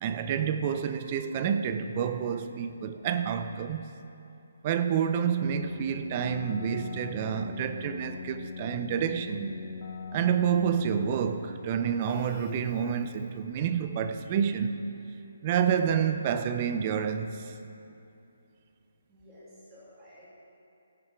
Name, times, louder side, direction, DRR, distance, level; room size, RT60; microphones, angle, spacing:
voice 1, 0.0-3.8 4.6-9.5 10.1-14.8 15.4-17.5, right 8 dB, 30° right, 0.5 m, -28 dB
Keyboard (musical), 5.4-13.5, left 5 dB, 35° left, 0.6 m, -42 dB
voice 2, 19.1-20.3, equal, 10° right, 3.0 m, -53 dB
16.5 x 7.3 x 4.5 m
hypercardioid pair, 165°, 0 cm